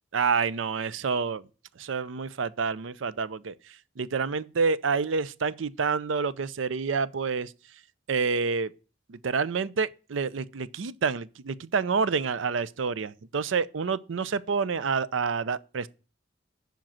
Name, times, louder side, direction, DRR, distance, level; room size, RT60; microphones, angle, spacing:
voice 1, 0.1-1.4 1.8-3.5 4.0-7.5 8.1-8.7 9.1-15.9, right 5 dB, 75° right, 0.5 m, -28 dB
7.6 x 5.3 x 7.4 m
head